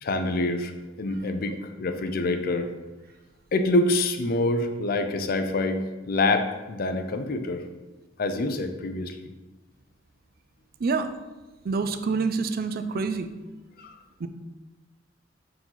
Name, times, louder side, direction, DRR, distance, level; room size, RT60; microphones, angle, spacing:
voice 1, 0.0-0.7 1.0-2.7 3.5-7.6 8.2-9.2 13.8-14.0, left 2 dB, 50° left, 8 dB, 0.5 m, -26 dB
voice 2, 10.8-11.1 11.6-13.3 14.2-14.3, right 4 dB, 55° right, 9 dB, 0.4 m, -27 dB
4.8 x 3.8 x 5.7 m, 1.2 s
head